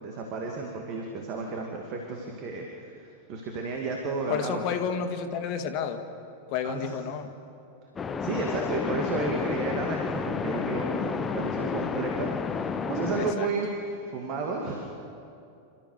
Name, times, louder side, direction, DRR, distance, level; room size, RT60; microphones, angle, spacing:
voice 1, 0.0-4.6 6.6-7.0 8.2-14.8, right 3 dB, 40° right, 1 dB, 2.4 m, -32 dB
voice 2, 4.3-6.0 6.5-7.3 11.6-11.7 13.2-13.5, left 7 dB, 40° left, 6 dB, 1.9 m, -31 dB
sound 1, 8.0-13.3, left 5 dB, 20° left, 0.9 m, -31 dB
27.5 x 14.0 x 6.7 m, 2.6 s
figure-of-eight pair, 90°, 0 cm